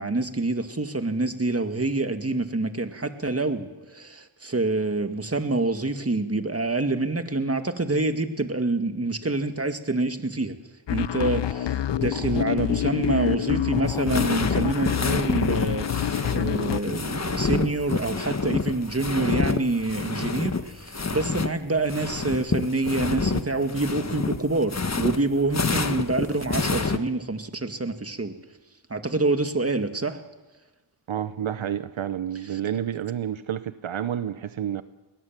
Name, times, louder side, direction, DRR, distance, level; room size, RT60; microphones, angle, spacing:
voice 1, 0.0-10.6 10.9-28.3 28.9-30.2 32.5-32.6, right 2 dB, 30° right, 8 dB, 2.1 m, -27 dB
sound 1, 10.9-16.8, left 10 dB, 60° left, 0.7 m, -27 dB
sound 2, 13.9-21.5 21.8-27.0, left 4 dB, 35° left, 1.4 m, -28 dB
voice 2, 31.1-34.8, right 9 dB, 75° right, 13 dB, 0.9 m, -29 dB
21.5 x 19.5 x 7.6 m, 1.1 s
cardioid pair, 50°, 48 cm